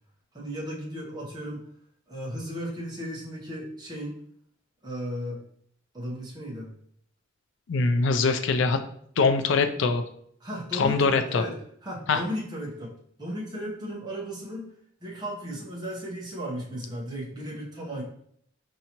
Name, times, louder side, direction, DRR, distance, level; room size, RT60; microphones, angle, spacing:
voice 1, 0.3-1.6 2.1-4.2 4.8-5.4 5.9-6.7 10.4-11.5 11.8-12.9 13.2-14.7 15.0-18.0, equal, 20° right, -4 dB, 0.8 m, -35 dB
voice 2, 7.7-8.8 9.2-10.0 10.7-11.4 12.1-12.2, left 4 dB, 65° left, 8 dB, 0.4 m, -23 dB
4.6 x 2.7 x 2.9 m, 0.66 s
head